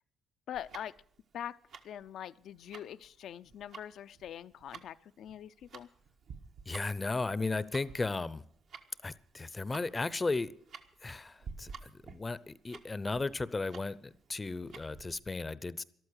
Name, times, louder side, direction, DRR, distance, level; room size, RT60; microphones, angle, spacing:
voice 1, 0.5-0.9 1.3-1.6 1.8-5.9, left 10 dB, 70° left, 13 dB, 0.5 m, -43 dB
Tick-tock, 0.5-15.2, right 5 dB, 70° right, 1.5 m, -52 dB
voice 2, 6.7-8.4 9.0-10.5 11.0-15.8, left 3 dB, 25° left, 18 dB, 0.6 m, -35 dB
13.5 x 12.5 x 6.4 m, 0.65 s
cardioid pair, 90°, 0 cm